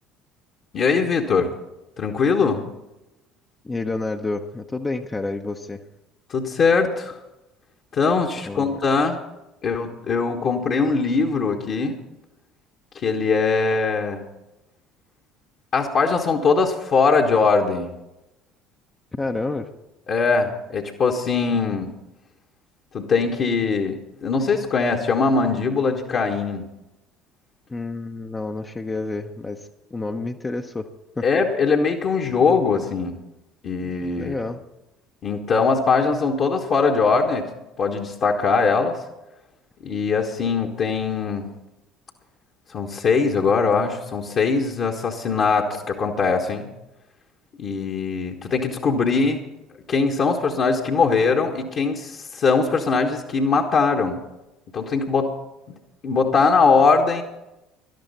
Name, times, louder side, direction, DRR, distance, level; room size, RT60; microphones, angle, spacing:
voice 1, 0.7-1.5 2.0-2.6 6.3-7.2 7.9-9.2 9.6-12.0 12.9-14.2 15.7-17.9 20.1-21.9 22.9-26.7 31.2-33.2 33.6-34.4 35.2-37.5 37.8-39.0 39.8-41.5 42.7-46.7 47.6-49.4 49.9-54.2 54.7-55.3 55.7-55.8 56.0-57.2, left 4 dB, 45° left, -1 dB, 1.5 m, -21 dB
voice 2, 3.6-5.8 8.4-8.8 19.2-19.7 27.7-30.9 31.2-31.3 33.8-34.6, left 3 dB, 20° left, 3 dB, 0.9 m, -29 dB
18.0 x 12.5 x 4.2 m, 0.94 s
figure-of-eight pair, 60°, 0 cm